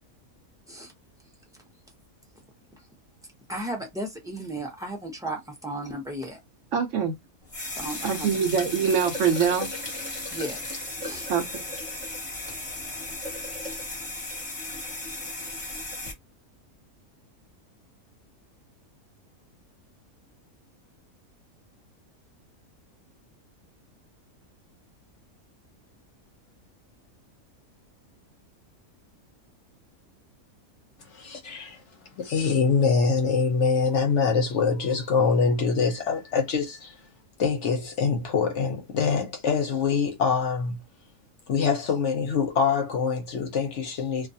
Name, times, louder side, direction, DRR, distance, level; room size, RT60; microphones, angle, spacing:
voice 1, 3.5-6.4 7.8-8.4 10.3-10.6 11.0-11.3, right 1 dB, 5° right, 0.5 m, -35 dB
voice 2, 6.7-7.1 8.0-9.7 11.3-11.4, right 7 dB, 65° right, 0.9 m, -23 dB
sound 1, 7.5-16.1, left 2 dB, 25° left, 0.9 m, -35 dB
voice 3, 31.1-31.8 32.2-36.9 37.4-40.8 41.5-44.3, left 5 dB, 60° left, 0.8 m, -24 dB
2.4 x 2.3 x 2.7 m
omnidirectional pair, 1.5 m